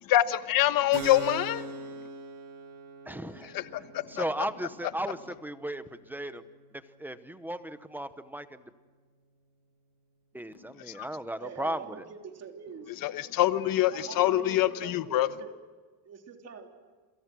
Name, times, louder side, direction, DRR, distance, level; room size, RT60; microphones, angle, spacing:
voice 1, 0.1-1.6 3.5-4.2 11.0-11.1 13.0-15.3, left 13 dB, 55° left, 12 dB, 1.2 m, -25 dB
Keyboard (musical), 0.9-8.2, right 2 dB, 90° right, 6.7 m, -44 dB
voice 2, 3.1-8.6 10.3-12.1, right 1 dB, 5° right, 11 dB, 0.9 m, -36 dB
voice 3, 11.4-12.9 13.9-15.5 16.1-16.7, right 6 dB, 40° right, 3 dB, 3.4 m, -45 dB
28.5 x 27.5 x 6.2 m, 1.4 s
cardioid pair, 170°, 41 cm